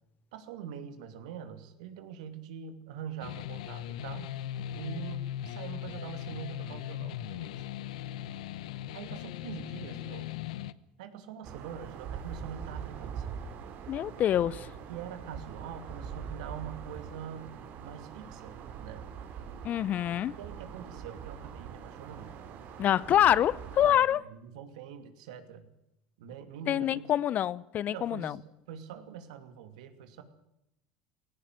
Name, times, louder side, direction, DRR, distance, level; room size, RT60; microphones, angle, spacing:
voice 1, 0.3-4.3 4.7-7.6 8.9-10.3 11.0-13.3 14.9-19.0 20.4-22.3 23.8-24.0 24.3-25.6 26.2-27.1 27.9-28.4 28.7-30.2, right 8 dB, 85° right, 2.6 m, -44 dB
sound 1, 3.2-10.7, left 12 dB, 90° left, 0.8 m, -39 dB
sound 2, 11.4-23.9, right 7 dB, 55° right, 3.3 m, -43 dB
voice 2, 13.9-14.7 19.6-20.4 22.8-24.2 26.7-28.4, left 11 dB, 45° left, 0.7 m, -26 dB
17.5 x 16.5 x 9.3 m
supercardioid pair, 105°, 4 cm